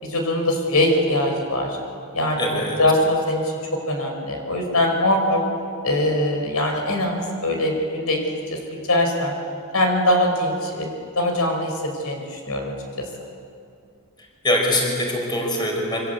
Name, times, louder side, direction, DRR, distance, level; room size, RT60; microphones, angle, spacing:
voice 1, 0.0-1.8 2.1-3.4 3.9-5.4 5.8-8.2 8.9-9.3 9.7-10.9 11.2-12.7, left 1 dB, 80° left, 3 dB, 5.4 m, -22 dB
voice 2, 2.4-2.8 14.4-16.1, left 1 dB, 20° left, 0 dB, 5.4 m, -23 dB
28.0 x 25.0 x 8.3 m, 2.3 s
head